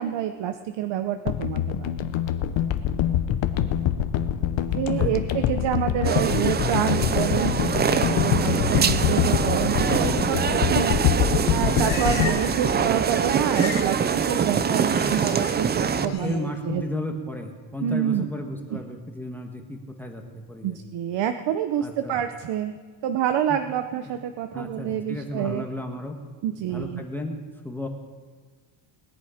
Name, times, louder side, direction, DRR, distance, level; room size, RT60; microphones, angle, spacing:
voice 1, 0.0-1.9 4.7-11.0 11.5-14.0 14.3-16.9 17.8-18.3 18.7-18.8 20.6-22.8 23.0-25.7 26.4-27.0, right 10 dB, 65° right, 8 dB, 0.9 m, -27 dB
sound 1, 1.3-13.6 13.9-14.0, left 10 dB, 70° left, 1.0 m, -25 dB
sound 2, 6.0-16.1, right 6 dB, 25° right, 0.4 m, -24 dB
Livestock farm animals working animals, 11.5-12.6 12.9-13.9 14.2-15.5 16.0-16.4, left 5 dB, 85° left, 2.7 m, -37 dB
voice 2, 14.8-15.3 15.9-20.2 20.5-20.8 21.8-22.2 23.5-23.6 24.5-26.2 26.7-27.4 27.6-27.9, left 1 dB, 5° left, 3 dB, 1.3 m, -33 dB
20.0 x 10.5 x 5.0 m, 1.5 s
cardioid pair, 150°, 48 cm